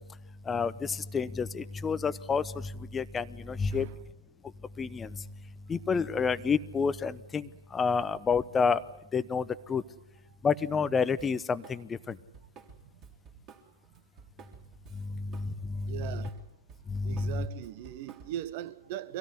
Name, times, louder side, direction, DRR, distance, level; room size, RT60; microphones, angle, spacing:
voice 1, 0.5-3.9 4.8-5.1 5.7-8.8 9.1-9.8 10.4-12.2 15.4-15.5 16.9-17.3, left 5 dB, 15° left, 0.8 m, -29 dB
voice 2, 3.7-4.0 13.9-14.0 15.7-16.4 17.0-19.2, right 12 dB, 40° right, 1.4 m, -40 dB
Drum kit, 11.2-11.8 12.1-15.5 15.8-18.5, right 6 dB, 25° right, 3.5 m, -53 dB
25.0 x 17.0 x 9.7 m
figure-of-eight pair, 120°, 0 cm